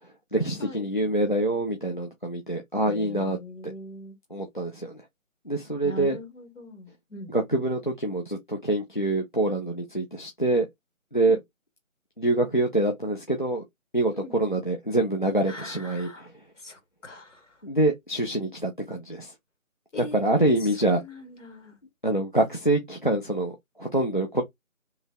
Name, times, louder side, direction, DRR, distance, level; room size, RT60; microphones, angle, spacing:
voice 1, 0.3-3.4 4.3-5.0 5.5-6.2 7.3-10.7 11.1-11.4 12.2-13.6 13.9-16.3 17.6-19.3 20.1-21.0 22.0-24.4, right 1 dB, 35° left, 0.6 m, -25 dB
voice 2, 2.8-4.2 5.8-7.3 11.2-11.4 14.1-14.4 15.5-16.3 16.6-17.6 19.9-21.8, left 2 dB, 60° left, 2.1 m, -42 dB
3.2 x 2.8 x 3.5 m
figure-of-eight pair, 180°, 42 cm